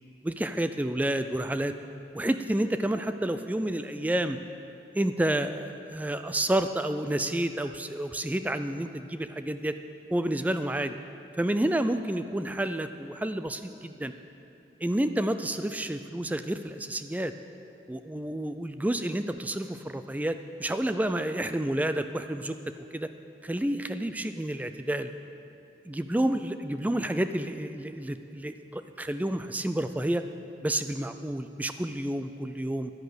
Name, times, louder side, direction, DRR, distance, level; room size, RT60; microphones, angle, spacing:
voice 1, 0.2-1.7 2.1-4.4 4.9-9.8 10.1-11.0 11.4-14.1 14.8-17.3 17.9-22.6 22.9-23.1 23.4-25.1 25.9-30.2 30.6-32.9, right 1 dB, 10° right, 9 dB, 0.3 m, -29 dB
11.0 x 10.5 x 7.9 m, 2.7 s
head